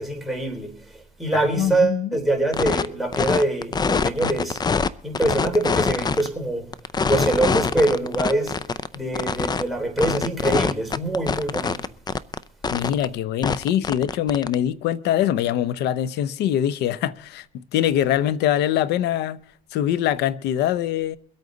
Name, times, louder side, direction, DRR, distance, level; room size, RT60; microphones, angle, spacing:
voice 1, 0.0-4.6 5.0-6.7 7.0-8.6 8.9-11.8, right 2 dB, ahead, 3.6 m, -24 dB
voice 2, 1.3-2.1 12.7-19.4 19.7-21.2, left 11 dB, 85° left, 0.7 m, -23 dB
sound 1, 2.5-2.8 3.1-4.9 5.1-6.3 6.7-9.6 10.0-12.4 12.6-13.0 13.4-14.5, left 5 dB, 25° left, 0.5 m, -24 dB
23.0 x 8.6 x 3.9 m
cardioid pair, 110°, 17 cm